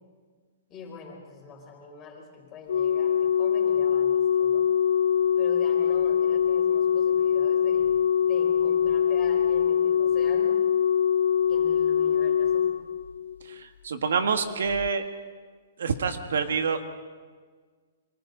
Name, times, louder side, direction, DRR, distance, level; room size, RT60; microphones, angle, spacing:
voice 1, 0.7-4.7 5.4-7.9 8.2-10.6 11.5-12.6, left 5 dB, 20° left, -1 dB, 4.8 m, -44 dB
Organ, 2.7-13.6 14.7-14.9, left 8 dB, 80° left, 0.5 m, -23 dB
voice 2, 13.5-15.0 15.8-16.8, right 5 dB, 85° right, 7 dB, 1.6 m, -27 dB
29.5 x 24.5 x 4.0 m, 1.6 s
hypercardioid pair, 165°, 0 cm